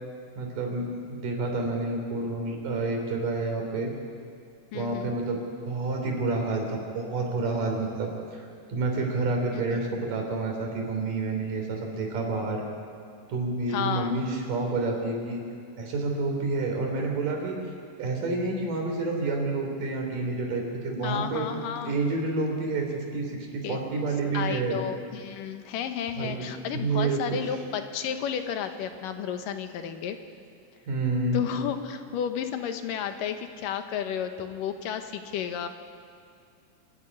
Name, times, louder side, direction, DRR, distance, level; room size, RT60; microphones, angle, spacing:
voice 1, 0.4-3.9 4.7-5.4 5.6-8.4 8.7-12.6 13.3-15.4 15.8-17.6 18.0-21.5 21.8-24.8 26.2-27.4 30.9-31.5, right 3 dB, 80° right, 1 dB, 5.0 m, -29 dB
voice 2, 4.7-5.1 9.5-9.8 13.7-14.1 21.0-22.0 23.6-23.8 24.3-30.2 31.3-35.7, left 8 dB, 85° left, 7 dB, 2.8 m, -32 dB
26.0 x 13.0 x 9.8 m, 2.3 s
omnidirectional pair, 3.8 m